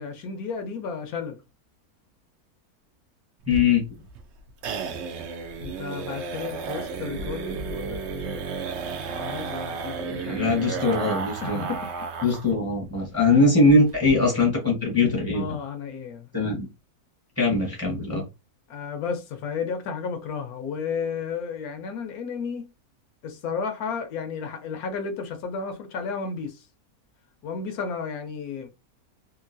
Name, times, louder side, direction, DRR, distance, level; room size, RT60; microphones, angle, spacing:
voice 1, 0.0-1.4 5.6-8.4 9.1-10.4 11.4-11.9 15.3-16.3 18.7-22.7 23.2-26.7 27.4-28.7, left 5 dB, 75° left, 1.0 m, -33 dB
sound 1, 3.4-12.5 12.8-12.9 13.2-13.3 13.6-14.1, right 5 dB, 70° right, 0.6 m, -33 dB
voice 2, 3.5-3.8 10.1-11.7 12.2-15.6 16.3-16.7 17.4-18.3, left 3 dB, 10° right, 0.9 m, -21 dB
2.9 x 2.5 x 2.6 m
omnidirectional pair, 1.6 m